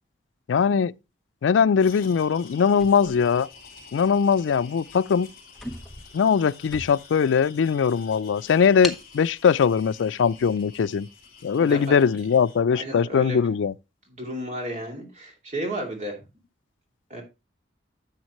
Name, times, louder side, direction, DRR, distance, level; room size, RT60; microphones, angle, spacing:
voice 1, 0.5-0.9 1.4-3.5 3.9-5.3 6.1-11.1 11.4-13.7, left 6 dB, 85° left, 0.4 m, -21 dB
sound 1, 1.8-12.6, left 5 dB, 50° left, 3.8 m, -48 dB
sound 2, 2.8-4.0 4.7-4.9 5.2-5.3 5.5-7.3 7.8-7.9 8.8-9.1, left 1 dB, ahead, 1.0 m, -38 dB
voice 2, 11.6-12.0 12.7-13.4 14.1-16.2 17.1-17.2, right 1 dB, 35° right, 2.6 m, -33 dB
10.5 x 7.3 x 3.0 m
head